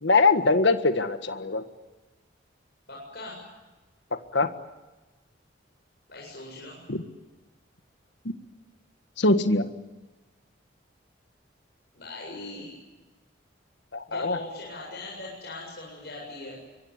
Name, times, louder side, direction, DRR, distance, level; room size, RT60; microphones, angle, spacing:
voice 1, 0.0-1.6 4.3-4.5 6.9-7.0 9.2-9.7 13.9-14.4, left 3 dB, 70° left, 9 dB, 1.7 m, -22 dB
voice 2, 2.9-3.5 6.1-6.8 11.9-12.7 14.1-16.6, left 2 dB, 55° left, -3 dB, 7.9 m, -40 dB
25.0 x 23.0 x 9.7 m, 1.2 s
head